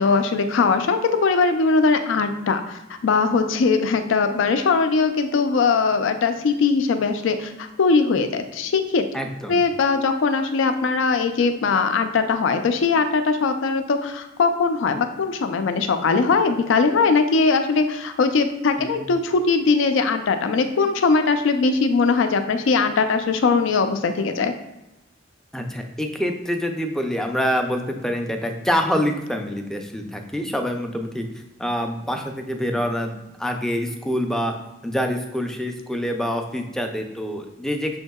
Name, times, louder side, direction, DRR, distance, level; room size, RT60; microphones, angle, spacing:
voice 1, 0.0-9.1 9.5-24.5, left 4 dB, 75° left, 8 dB, 0.4 m, -20 dB
voice 2, 9.1-9.6 18.8-19.1 25.5-31.3 31.6-33.1 33.4-34.5 34.8-38.0, equal, 5° left, 4 dB, 0.3 m, -26 dB
6.3 x 2.7 x 2.3 m, 0.98 s
head